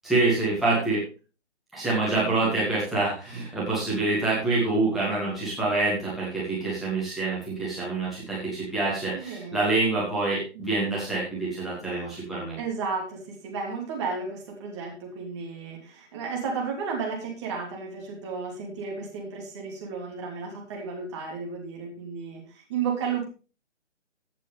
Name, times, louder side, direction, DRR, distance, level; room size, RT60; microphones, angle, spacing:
voice 1, 0.0-1.0 1.7-12.6, right 3 dB, ahead, -9 dB, 2.7 m, -26 dB
voice 2, 2.1-2.5 9.1-9.7 10.5-11.0 12.6-23.2, right 5 dB, 25° right, -1 dB, 3.0 m, -33 dB
15.5 x 8.4 x 3.5 m, 0.34 s
figure-of-eight pair, 140°, 36 cm